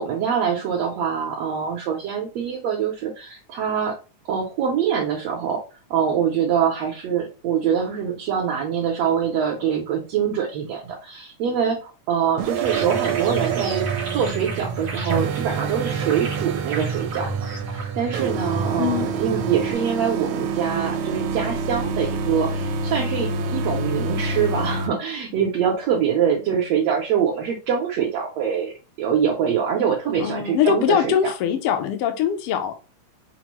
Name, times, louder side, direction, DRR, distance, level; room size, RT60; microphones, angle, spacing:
voice 1, 0.0-4.0 4.3-5.6 5.9-17.3 17.6-28.7 29.0-31.1, right 7 dB, 70° right, -1 dB, 1.7 m, -24 dB
sound 1, 12.4-24.9, right 5 dB, 90° right, 2.0 m, -27 dB
sound 2, 12.6-19.7, right 4 dB, 50° right, 1.0 m, -30 dB
voice 2, 18.8-19.1 30.2-32.8, left 9 dB, 75° left, 6 dB, 1.3 m, -22 dB
5.9 x 2.1 x 3.0 m, 0.32 s
omnidirectional pair, 3.3 m